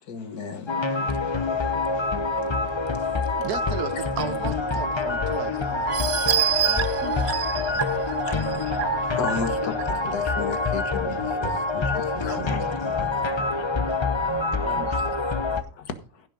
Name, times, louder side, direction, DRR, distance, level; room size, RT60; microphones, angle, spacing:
voice 1, 0.1-0.6 7.2-7.3 8.3-8.4 9.2-9.5 10.1-11.1 11.7-12.6, left 5 dB, 85° left, 1.9 m, -32 dB
sound 1, 0.7-15.6, left 3 dB, 25° left, 0.7 m, -26 dB
voice 2, 3.4-5.9 6.7-7.4 7.7-8.1 12.3-12.7 14.6-15.0, right 9 dB, 85° right, 1.4 m, -36 dB
sound 2, 5.9-10.3 10.8-10.9 11.3-11.4, right 10 dB, 55° right, 0.8 m, -28 dB
voice 3, 10.9-14.0 14.2-14.9, right 6 dB, 30° right, 2.6 m, -44 dB
15.5 x 6.2 x 5.1 m
omnidirectional pair, 1.6 m